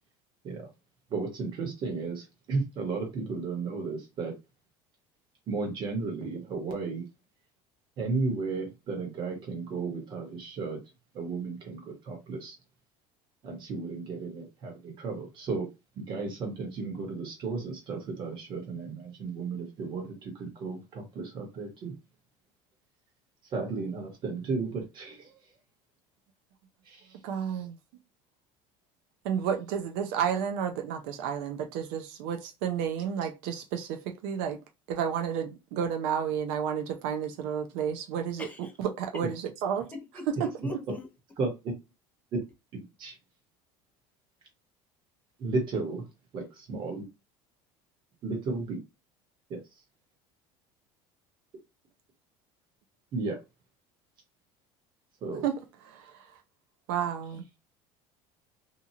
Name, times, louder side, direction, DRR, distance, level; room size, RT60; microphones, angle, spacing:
voice 1, 1.1-4.3 5.5-7.0 8.0-10.8 11.1-12.6 13.4-15.7 16.0-21.9 23.5-25.3 26.9-27.0 40.6-40.7 41.4-41.7 42.7-43.2 45.4-46.0 46.3-47.1 48.2-48.8 49.5-49.6 53.1-53.4 55.2-55.5, right 4 dB, 40° right, 1.3 m, -34 dB
voice 2, 27.2-27.8 29.2-34.6 34.9-39.9 40.4-40.8 55.4-55.6 55.8-56.2 56.9-57.4, right 8 dB, 75° right, 0.5 m, -31 dB
voice 3, 38.4-38.7 39.9-41.1, left 2 dB, 15° left, 0.6 m, -40 dB
2.8 x 2.4 x 2.8 m
cardioid pair, 140°, 12 cm